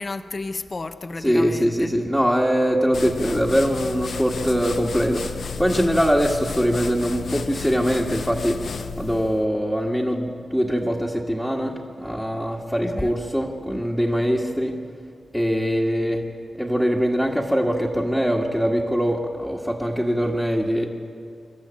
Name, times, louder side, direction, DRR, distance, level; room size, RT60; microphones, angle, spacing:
voice 1, 0.0-1.9 12.8-13.1, left 3 dB, 35° left, 9 dB, 0.8 m, -32 dB
voice 2, 1.2-8.6 9.0-14.7 15.3-16.2 16.6-20.9, equal, 5° right, -4 dB, 1.7 m, -22 dB
sound 1, 2.9-9.4, left 5 dB, 70° left, 0.9 m, -33 dB
27.0 x 13.5 x 8.9 m, 2.3 s
wide cardioid pair, 130°, 0 cm